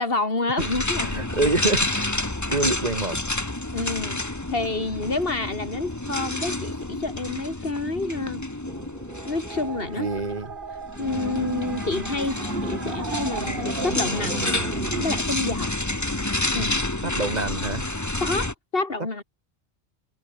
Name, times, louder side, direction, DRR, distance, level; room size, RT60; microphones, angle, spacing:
voice 1, 0.0-1.3 3.7-4.2 4.5-8.4 9.3-10.1 11.0-14.4 15.0-15.7 16.5-16.8 18.2-19.2, left 3 dB, 65° left, 2.9 m, -28 dB
sound 1, 0.6-18.5, left 2 dB, 15° left, 1.5 m, -29 dB
voice 2, 1.0-2.1 2.5-3.2 10.0-10.5 17.0-17.8, right 2 dB, 40° right, 2.2 m, -26 dB
sound 2, 8.6-15.2, right 5 dB, 60° right, 1.5 m, -35 dB
omnidirectional pair, 1.0 m